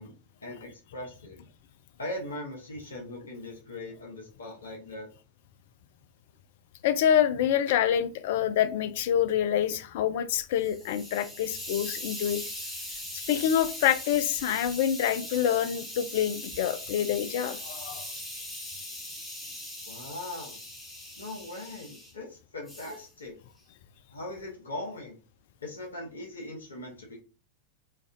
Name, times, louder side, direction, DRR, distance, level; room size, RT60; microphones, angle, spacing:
voice 1, 0.0-1.4 2.0-5.1 19.9-20.6 21.2-23.3 24.1-25.2 25.6-27.2, left 1 dB, 70° left, -1 dB, 0.9 m, -40 dB
voice 2, 6.8-12.4 13.1-18.1, left 10 dB, 50° left, 12 dB, 0.3 m, -26 dB
Hiss, 10.4-22.1 22.7-23.0, left 1 dB, 10° left, 1.2 m, -40 dB
3.2 x 2.4 x 2.5 m, 0.33 s
figure-of-eight pair, 90°, 0 cm